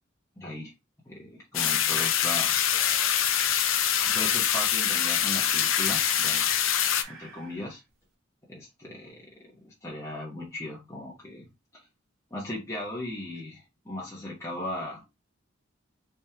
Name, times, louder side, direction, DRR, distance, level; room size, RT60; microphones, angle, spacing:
voice 1, 0.4-0.7 1.0-2.6 4.0-6.5 7.1-7.8 8.5-11.5 12.3-15.0, left 1 dB, 15° left, 1.1 m, -37 dB
sound 1, 1.5-7.0, left 9 dB, 75° left, 0.5 m, -24 dB
sound 2, 2.7-7.9, right 4 dB, 85° right, 1.3 m, -44 dB
3.5 x 3.1 x 2.8 m
head